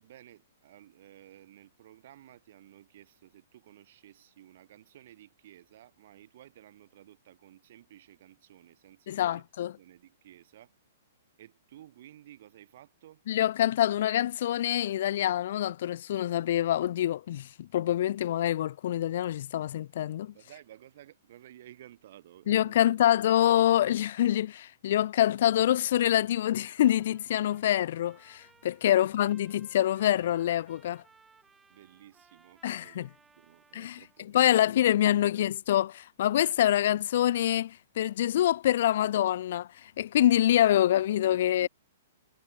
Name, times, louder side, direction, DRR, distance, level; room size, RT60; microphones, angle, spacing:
voice 1, 0.0-10.7 11.4-13.2 20.3-23.5 28.8-29.1 31.7-34.8 35.1-35.3 41.6-41.7, right 13 dB, 55° right, 3.2 m, -54 dB
voice 2, 9.1-9.7 13.3-20.3 22.5-31.0 32.6-33.1 33.7-34.0 34.3-41.7, left 12 dB, 60° left, 0.4 m, -26 dB
Trumpet, 26.2-34.3, right 5 dB, 10° right, 3.9 m, -62 dB
hypercardioid pair, 150°, 0 cm